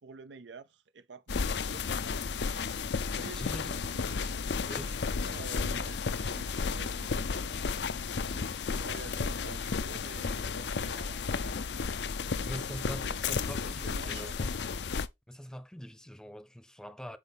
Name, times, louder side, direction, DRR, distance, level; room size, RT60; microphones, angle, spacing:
voice 1, 0.0-1.9 3.1-7.7 8.1-11.6 12.3-13.5 13.8-14.4, right 4 dB, 90° right, 0.6 m, -49 dB
sound 1, 1.3-15.1, left 5 dB, 75° left, 0.6 m, -33 dB
voice 2, 3.3-3.7 4.7-4.9 12.4-14.5 15.3-17.2, equal, 5° left, 0.7 m, -43 dB
8.1 x 4.9 x 3.5 m
head